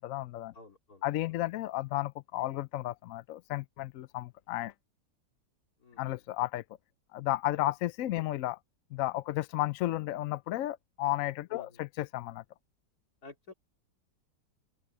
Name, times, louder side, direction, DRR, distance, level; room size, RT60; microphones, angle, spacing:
voice 1, 0.0-0.5 1.0-4.7 6.0-6.6 7.1-8.6 8.9-12.4, left 15 dB, 75° left, 0.7 m, -33 dB
voice 2, 0.5-1.4 5.8-6.2 11.5-11.8 13.2-13.5, left 4 dB, 55° left, 3.1 m, -52 dB
open air
omnidirectional pair, 1.9 m